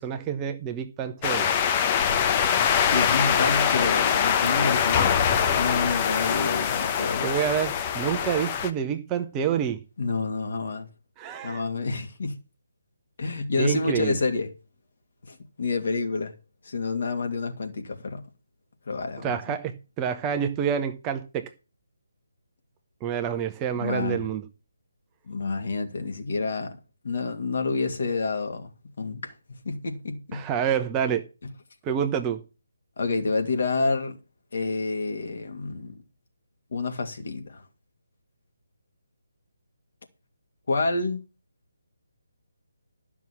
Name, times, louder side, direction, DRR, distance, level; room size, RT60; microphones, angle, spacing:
voice 1, 0.0-1.5 7.2-9.8 11.2-11.6 13.6-14.1 19.2-21.5 23.0-24.5 30.3-31.2 31.8-32.4, right 8 dB, 15° right, 0.9 m, -28 dB
sound 1, 1.2-8.7, left 8 dB, 25° left, 1.0 m, -23 dB
voice 2, 2.9-5.1 5.5-7.3 10.0-10.9 11.4-12.4 13.2-14.5 15.3-16.3 16.6-18.2 18.9-19.4 23.7-24.3 25.3-26.8 27.0-28.7 29.0-29.3 29.6-30.4 33.0-34.2 34.5-36.0 36.7-37.6 40.7-41.2, left 3 dB, 55° left, 2.6 m, -28 dB
12.5 x 6.1 x 7.2 m
figure-of-eight pair, 150°, 0 cm